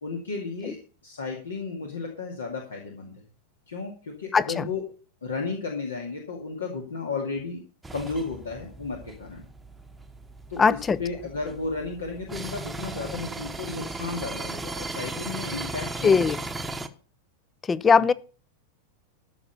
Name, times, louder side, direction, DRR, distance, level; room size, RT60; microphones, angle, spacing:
voice 1, 0.0-3.1 3.7-4.8 5.2-7.6 7.9-9.4 10.5-16.3 18.0-18.1, left 4 dB, 70° left, 2.2 m, -33 dB
voice 2, 4.3-4.7 10.6-11.0 16.0-16.4 17.7-18.1, left 5 dB, 20° left, 0.5 m, -20 dB
sound 1, 7.8-16.9, right 2 dB, 10° right, 1.0 m, -37 dB
13.5 x 6.0 x 6.8 m
figure-of-eight pair, 90°, 0 cm